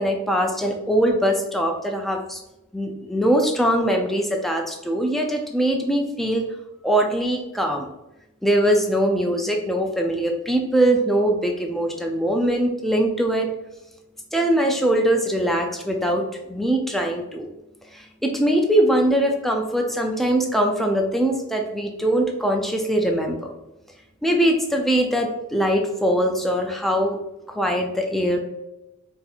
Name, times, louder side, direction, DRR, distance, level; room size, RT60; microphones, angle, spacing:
voice 1, 0.0-2.4 2.7-6.4 6.8-7.9 8.4-13.5 14.3-17.5 17.9-23.5 24.2-27.2 27.5-28.4, right 1 dB, ahead, 2 dB, 0.3 m, -22 dB
4.2 x 2.7 x 2.4 m, 0.94 s
head